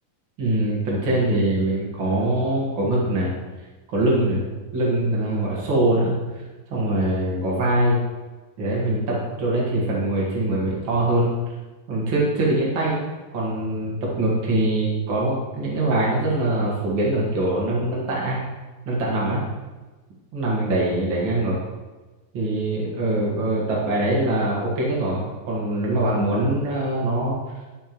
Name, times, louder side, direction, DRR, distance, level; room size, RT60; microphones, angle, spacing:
voice 1, 0.4-3.3 3.9-4.4 4.7-6.2 6.7-8.0 8.6-11.3 11.9-13.1 13.3-18.4 18.8-19.4 20.3-21.6 22.3-27.4, right 1 dB, 85° right, -5 dB, 1.1 m, -23 dB
12.5 x 5.6 x 3.0 m, 1.2 s
omnidirectional pair, 5.2 m